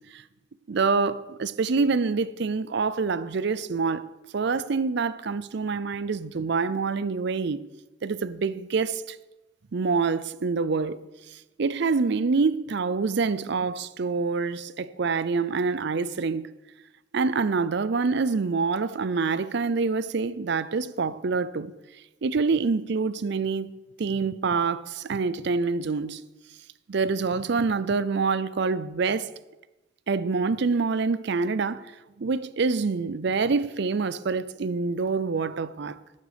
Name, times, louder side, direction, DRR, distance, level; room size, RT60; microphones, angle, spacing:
voice 1, 0.7-4.0 4.3-7.6 8.0-9.2 9.7-11.0 11.6-16.5 17.1-21.7 22.2-23.7 24.0-26.2 26.9-29.3 30.1-31.9 32.2-36.0, right 4 dB, 55° right, 0.5 m, -26 dB
12.0 x 8.4 x 5.1 m
head